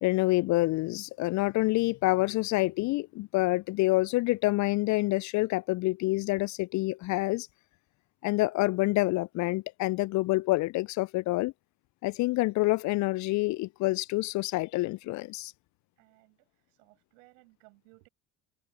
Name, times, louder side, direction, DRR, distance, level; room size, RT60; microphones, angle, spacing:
voice 1, 0.0-7.5 8.2-11.5 12.0-15.5, left 21 dB, 45° left, 0.5 m, -27 dB
voice 2, 16.0-18.1, right 30 dB, 65° right, 6.6 m, -60 dB
figure-of-eight pair, 65°, 41 cm